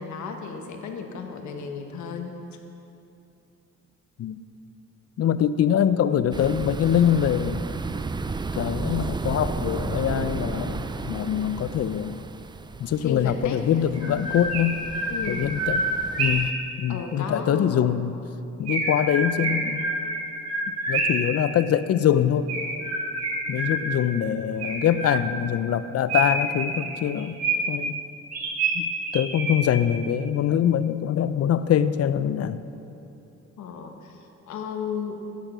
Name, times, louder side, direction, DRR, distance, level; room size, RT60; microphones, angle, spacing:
voice 1, 0.0-2.4 13.0-14.2 15.1-15.5 16.4-16.6 16.9-17.9 33.6-35.2, left 5 dB, 70° left, 4 dB, 1.4 m, -34 dB
voice 2, 5.2-7.6 8.6-12.1 12.8-14.8 15.3-15.8 16.2-16.5 16.8-18.2 18.6-19.8 20.9-22.5 23.5-27.4 27.7-28.0 28.7-28.9 29.1-32.6, left 9 dB, 55° left, 14 dB, 0.5 m, -23 dB
sound 1, 6.3-16.5, right 4 dB, 15° right, 0.4 m, -33 dB
Chirp tweet, 13.9-16.6 18.7-21.3 22.5-24.1 24.6-25.5 26.1-27.8 28.3-29.8, right 2 dB, 65° right, 3.2 m, -27 dB
10.5 x 9.0 x 6.2 m, 2.8 s
cardioid pair, 90°, 30 cm